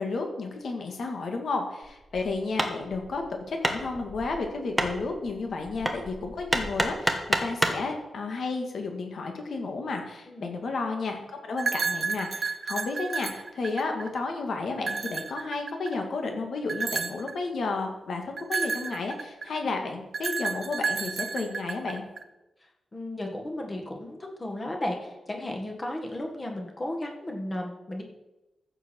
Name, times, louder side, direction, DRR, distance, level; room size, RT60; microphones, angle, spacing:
voice 1, 0.0-7.2 7.4-22.0, left 3 dB, 60° left, 3 dB, 1.9 m, -32 dB
Hammer, 1.8-7.9, right 1 dB, 5° right, 1.1 m, -30 dB
sound 1, 11.6-14.2 14.8-16.0 16.7-17.3 18.4-19.6 20.1-22.2, right 5 dB, 45° right, 0.7 m, -31 dB
voice 2, 22.9-28.0, left 1 dB, 20° left, 1 dB, 1.8 m, -34 dB
14.5 x 7.0 x 4.6 m, 0.97 s
wide cardioid pair, 155°, 0 cm